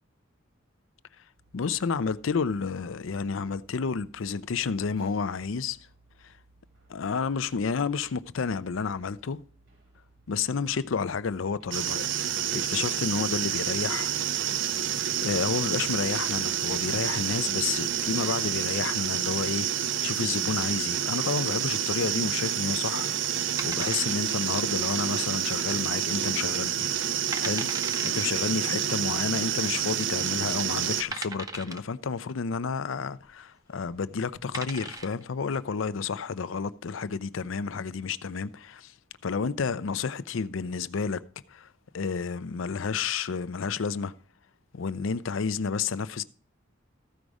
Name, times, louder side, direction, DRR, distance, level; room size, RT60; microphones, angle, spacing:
sound 1, 1.4-18.1, right 2 dB, 80° right, 4.1 m, -61 dB
voice 1, 1.5-5.8 6.2-6.3 6.9-9.4 10.3-12.1 12.5-14.1 14.6-14.8 15.2-19.7 20.0-23.1 23.6-26.9 27.4-38.9 39.2-41.2 41.5-41.7 41.9-44.1 44.7-46.2, left 5 dB, 75° left, 0.5 m, -30 dB
sound 2, 11.7-31.0, right 9 dB, 65° right, 0.5 m, -28 dB
sound 3, 23.6-24.5 24.8-24.9 25.5-25.9 26.3-26.4 27.0-27.1 27.3-28.3 29.4-29.5 30.2-30.3 31.1-31.9 33.8-34.0 34.3-35.2, right 3 dB, 20° right, 0.6 m, -37 dB
14.0 x 5.2 x 4.8 m
head